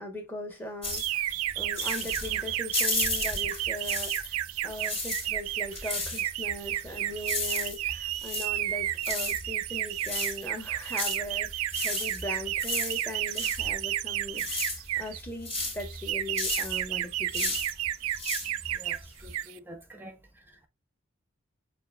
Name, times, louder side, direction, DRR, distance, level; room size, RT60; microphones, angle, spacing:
voice 1, 0.0-17.6, left 1 dB, 10° left, 1.0 m, -39 dB
sound 1, 0.8-4.4 4.7-19.3, left 2 dB, 30° left, 2.6 m, -34 dB
sound 2, 0.9-15.2 15.8-19.0 19.3-19.6, right 13 dB, 85° right, 0.3 m, -32 dB
voice 2, 18.7-20.2, equal, 10° right, 0.5 m, -47 dB
7.2 x 2.5 x 2.2 m
head